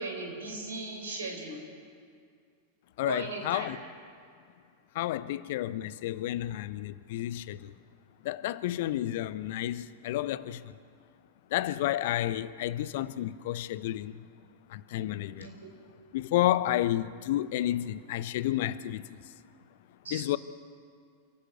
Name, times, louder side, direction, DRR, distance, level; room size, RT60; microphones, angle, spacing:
voice 1, 0.0-1.6 3.0-3.7 15.3-15.5 20.0-20.3, right 3 dB, 70° right, 5.2 m, -37 dB
voice 2, 3.0-3.8 4.9-7.7 8.2-10.6 11.5-14.2 14.7-15.5 16.1-19.2 20.1-20.4, left 13 dB, 50° left, 0.7 m, -31 dB
28.5 x 13.0 x 8.0 m
figure-of-eight pair, 90°, 0 cm